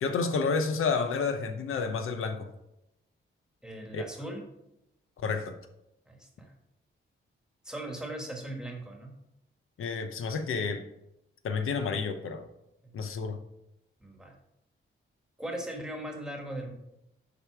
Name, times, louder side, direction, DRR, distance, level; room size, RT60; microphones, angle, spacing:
voice 1, 0.0-2.5 3.9-4.0 5.2-5.5 9.8-10.8 11.4-12.4 12.9-13.4, left 4 dB, 80° left, 7 dB, 0.8 m, -30 dB
voice 2, 3.6-4.4 6.1-6.5 7.6-9.1 14.0-14.3 15.4-16.7, right 1 dB, 5° right, 1 dB, 1.4 m, -39 dB
8.0 x 5.0 x 4.7 m, 0.86 s
wide cardioid pair, 170°, 21 cm